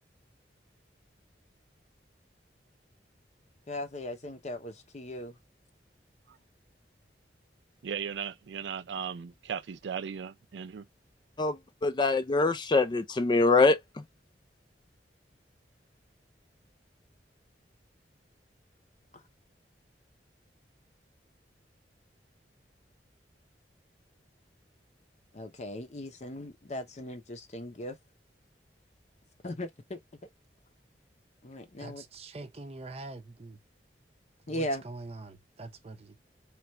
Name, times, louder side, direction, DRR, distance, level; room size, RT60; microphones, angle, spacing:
voice 1, 3.7-5.3 25.3-28.0 29.4-30.0 31.4-32.0 34.5-34.8, left 1 dB, 40° left, 0.7 m, -38 dB
voice 2, 7.8-10.9, right 7 dB, 85° right, 0.4 m, -37 dB
voice 3, 11.4-14.0, left 3 dB, 25° left, 0.3 m, -24 dB
voice 4, 31.8-33.6 34.5-36.2, right 2 dB, 35° right, 0.6 m, -44 dB
3.2 x 2.4 x 2.8 m
head